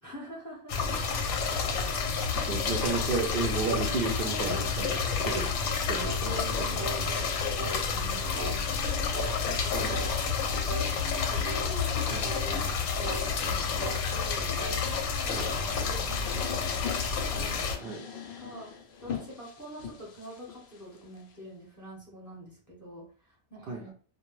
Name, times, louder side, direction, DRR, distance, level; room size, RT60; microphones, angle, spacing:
voice 1, 0.0-0.8 1.4-2.2 6.2-9.2 9.4-10.4 10.6-16.9 17.3-23.9, right 1 dB, 15° left, -4 dB, 0.7 m, -46 dB
sound 1, 0.7-17.8, left 5 dB, 85° left, 1.0 m, -30 dB
voice 2, 2.5-7.2 9.7-10.1 12.1-12.3 15.3-15.5 17.8-18.0 23.7-23.9, right 4 dB, 70° right, -1 dB, 0.5 m, -34 dB
sound 2, 3.7-3.9 4.4-4.7 5.2-5.5 6.0-6.2 6.8-7.0 7.6-7.8 8.3-8.6 9.1-9.3 9.9-10.1 10.7-10.9 11.4-11.7 12.2-12.5 13.0-13.3 13.8-14.1 14.6-14.8 15.3-15.6, right 2 dB, 20° right, 0.9 m, -38 dB
sound 3, 15.2-21.3, left 7 dB, 70° left, 0.5 m, -42 dB
2.2 x 2.2 x 3.0 m, 0.41 s
omnidirectional pair, 1.5 m